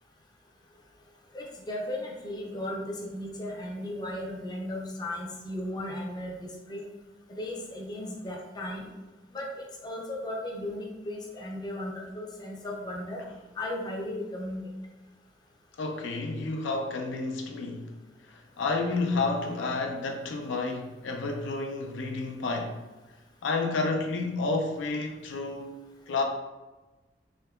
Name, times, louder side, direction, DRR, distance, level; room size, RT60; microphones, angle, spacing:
voice 1, 1.3-6.4 6.7-6.8 7.3-8.9 9.3-13.2 13.6-14.6, left 1 dB, 20° left, -1 dB, 0.5 m, -36 dB
voice 2, 15.8-17.9 18.2-22.8 23.4-25.7 26.1-26.2, left 3 dB, 85° left, 3 dB, 0.4 m, -30 dB
3.4 x 2.7 x 2.3 m, 1.1 s
head